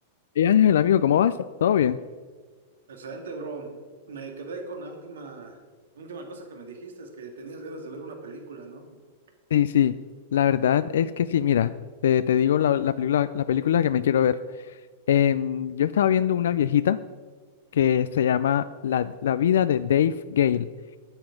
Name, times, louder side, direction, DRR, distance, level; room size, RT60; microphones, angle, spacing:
voice 1, 0.4-1.3 1.6-2.0 9.5-10.0 10.3-11.7 12.0-14.4 14.7-14.8 15.1-17.0 17.7-20.7, left 9 dB, 80° left, 13 dB, 0.3 m, -22 dB
voice 2, 2.9-3.8 4.1-5.6 6.0-9.0, right 3 dB, 85° right, 3 dB, 2.0 m, -39 dB
8.8 x 7.7 x 6.0 m, 1.4 s
hypercardioid pair, 120°, 0 cm